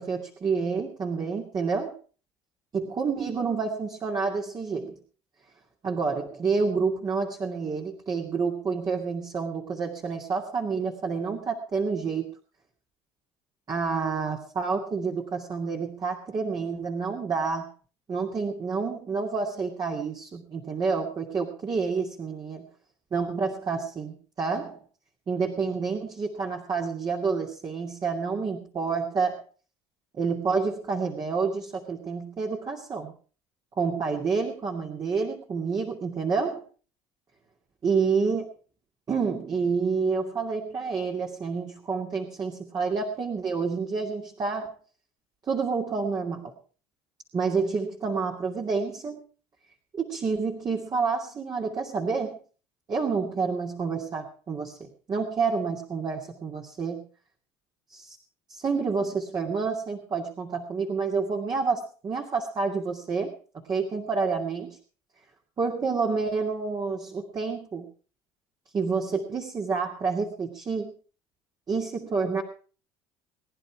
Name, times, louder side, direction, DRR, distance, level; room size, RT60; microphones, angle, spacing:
voice 1, 0.0-1.9 2.7-5.0 5.8-12.3 13.7-17.7 18.1-22.7 23.1-24.8 25.3-29.4 30.1-33.1 33.8-36.6 37.8-38.5 39.1-44.7 45.5-46.5 47.3-49.2 49.9-52.4 52.9-57.1 57.9-58.2 58.5-63.3 63.7-64.8 65.6-67.9 68.7-70.9 71.7-72.4, right 5 dB, 35° right, 0 dB, 2.5 m, -28 dB
20.5 x 10.5 x 4.8 m, 0.40 s
supercardioid pair, 85°, 12 cm